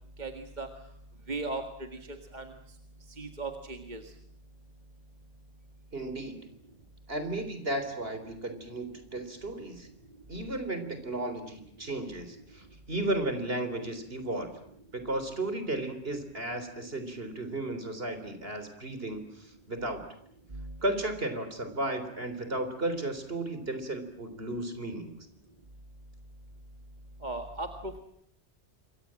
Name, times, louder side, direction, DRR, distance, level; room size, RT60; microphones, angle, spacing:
voice 1, 0.2-0.7 1.3-1.9 2.3-2.5 3.2-4.0 20.5-20.7 27.2-28.0, right 2 dB, 40° right, 5 dB, 2.0 m, -36 dB
voice 2, 5.9-6.4 7.1-9.9 10.3-14.5 14.9-20.0 20.8-25.1, right 1 dB, 55° right, 9 dB, 4.0 m, -34 dB
27.5 x 23.5 x 7.7 m, 0.70 s
omnidirectional pair, 1.2 m